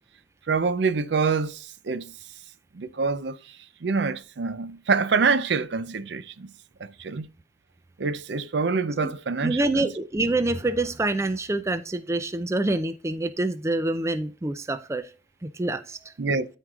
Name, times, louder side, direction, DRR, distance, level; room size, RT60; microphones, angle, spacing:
voice 1, 0.5-2.1 2.7-3.4 3.8-6.5 6.8-7.3 8.0-9.9 16.2-16.5, right 4 dB, 70° right, 0.5 m, -26 dB
voice 2, 9.4-15.1 15.4-16.1, right 2 dB, 15° right, 0.4 m, -26 dB
12.5 x 4.5 x 2.4 m
head